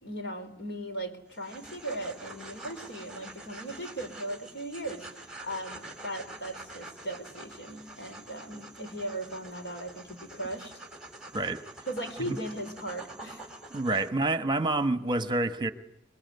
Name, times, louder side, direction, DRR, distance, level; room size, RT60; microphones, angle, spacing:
voice 1, 0.0-5.1 5.4-10.8 11.9-13.5 13.9-14.0, right 1 dB, 80° left, 7 dB, 4.0 m, -38 dB
sound 1, 1.3-14.1, right 2 dB, 5° right, 3.8 m, -46 dB
voice 2, 13.7-15.7, right 2 dB, 25° right, 10 dB, 1.3 m, -28 dB
25.0 x 22.0 x 9.5 m, 0.78 s
head